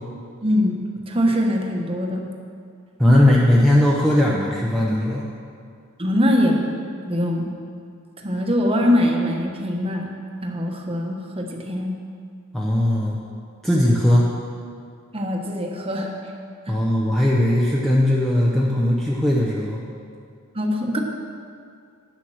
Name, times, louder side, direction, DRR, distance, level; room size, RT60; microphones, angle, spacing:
voice 1, 0.4-0.8 1.1-2.3 6.0-6.6 7.0-7.5 8.2-10.1 10.4-11.9 15.1-16.2 16.7-16.8 20.5-21.0, left 1 dB, 25° right, 1 dB, 1.1 m, -22 dB
voice 2, 3.0-5.3 12.5-13.2 13.6-14.3 16.7-19.8, left 1 dB, ahead, -5 dB, 0.8 m, -18 dB
9.5 x 7.5 x 6.3 m, 2.3 s
head